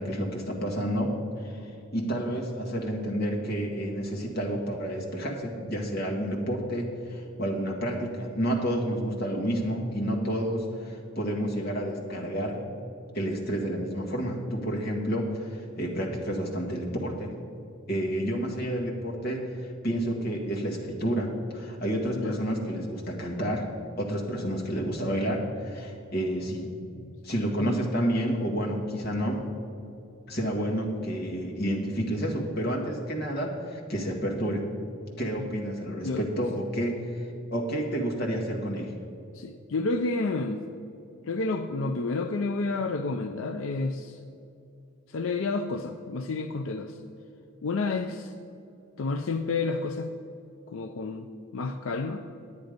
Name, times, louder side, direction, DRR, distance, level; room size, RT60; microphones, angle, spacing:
voice 1, 0.0-12.6 13.1-17.3 17.9-23.7 24.0-26.7 27.2-29.4 30.3-34.6 35.2-38.9, equal, 50° left, -1 dB, 1.8 m, -30 dB
voice 2, 39.3-40.6 41.2-44.2 45.1-47.0 47.6-48.3 49.0-50.1 50.7-52.2, left 3 dB, 85° left, 6 dB, 0.5 m, -30 dB
9.6 x 9.6 x 5.1 m, 2.7 s
head